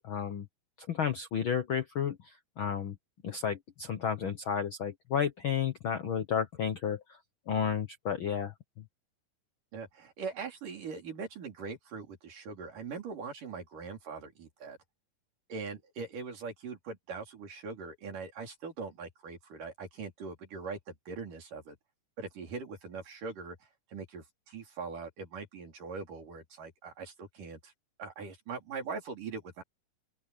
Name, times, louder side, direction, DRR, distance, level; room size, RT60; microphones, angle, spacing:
voice 1, 0.0-0.5 0.8-3.0 3.2-7.0 7.5-8.5, left 8 dB, 75° left, 1.1 m, -32 dB
voice 2, 9.7-14.8 15.5-21.8 22.2-27.7 28.0-29.6, right 4 dB, 75° right, 5.6 m, -41 dB
open air
omnidirectional pair, 3.8 m